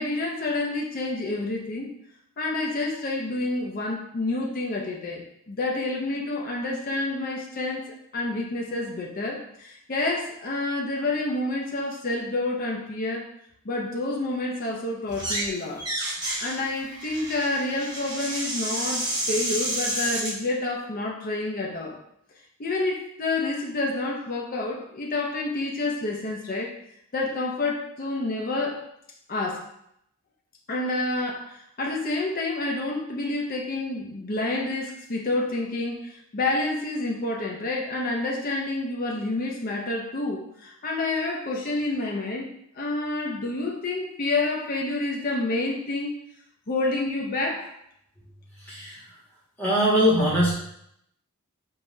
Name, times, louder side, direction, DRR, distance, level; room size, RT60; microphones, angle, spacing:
voice 1, 0.0-1.9 2.4-13.3 13.6-15.9 16.1-22.0 22.6-26.7 27.1-28.8 29.3-29.7 30.7-42.5 42.8-46.1 46.7-47.7, left 2 dB, 40° left, -1 dB, 0.6 m, -28 dB
sound 1, 15.1-15.5 15.8-20.3, right 1 dB, 20° right, 1.1 m, -30 dB
voice 2, 48.6-49.0 49.6-50.5, equal, 10° left, -10 dB, 1.6 m, -21 dB
5.4 x 3.4 x 2.6 m, 0.74 s
head